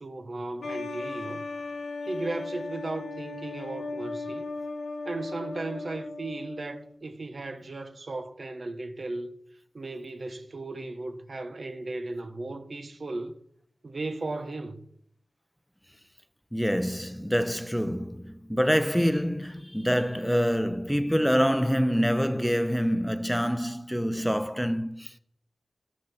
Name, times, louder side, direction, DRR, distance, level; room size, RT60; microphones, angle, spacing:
voice 1, 0.0-1.4 2.1-4.5 5.0-9.3 9.7-13.4 13.8-14.8, right 2 dB, 65° right, 1.0 m, -36 dB
sound 1, 0.6-6.9, left 3 dB, 90° left, 1.1 m, -37 dB
voice 2, 16.5-25.2, equal, ahead, 0.8 m, -26 dB
12.5 x 6.3 x 5.9 m
cardioid pair, 45°, 0 cm